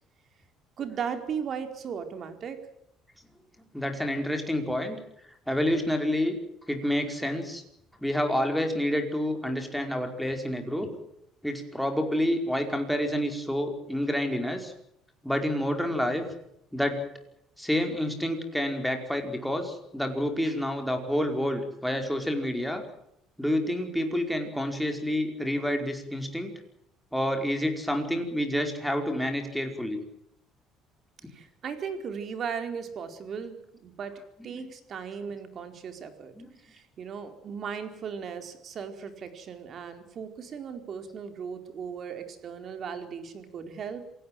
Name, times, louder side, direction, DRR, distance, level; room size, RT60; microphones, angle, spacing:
voice 1, 0.8-2.6 31.3-36.3 36.6-44.0, right 6 dB, 45° right, 8 dB, 4.4 m, -37 dB
voice 2, 3.7-5.0 5.5-6.4 6.7-7.6 8.0-10.9 11.4-14.7 15.2-16.2 16.7-17.0 17.6-22.8 23.4-26.5 27.1-30.0 34.4-34.7 36.3-36.5, equal, ahead, 4 dB, 5.0 m, -28 dB
27.5 x 18.0 x 7.7 m, 0.78 s
cardioid pair, 130°, 0 cm